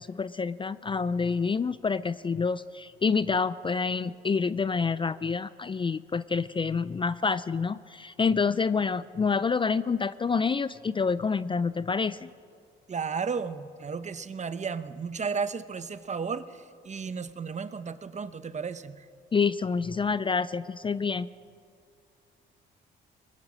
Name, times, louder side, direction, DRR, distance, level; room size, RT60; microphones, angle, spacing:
voice 1, 0.0-12.3 19.3-21.3, left 5 dB, 25° left, 16 dB, 0.4 m, -27 dB
voice 2, 12.9-19.1, right 5 dB, 35° right, 12 dB, 1.0 m, -34 dB
23.0 x 20.0 x 6.4 m, 2.3 s
cardioid pair, 90°, 20 cm